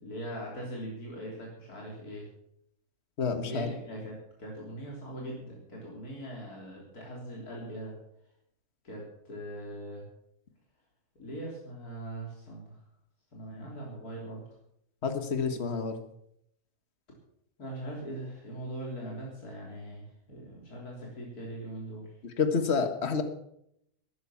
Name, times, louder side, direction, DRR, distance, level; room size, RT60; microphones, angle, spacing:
voice 1, 0.0-2.3 3.4-7.9 8.8-10.0 11.2-12.8 13.3-14.4 17.6-22.1, right 1 dB, 85° left, -3 dB, 4.1 m, -41 dB
voice 2, 3.2-3.7 15.0-16.0 22.2-23.2, left 5 dB, 45° left, 8 dB, 1.7 m, -29 dB
13.0 x 11.0 x 7.1 m, 0.74 s
omnidirectional pair, 1.6 m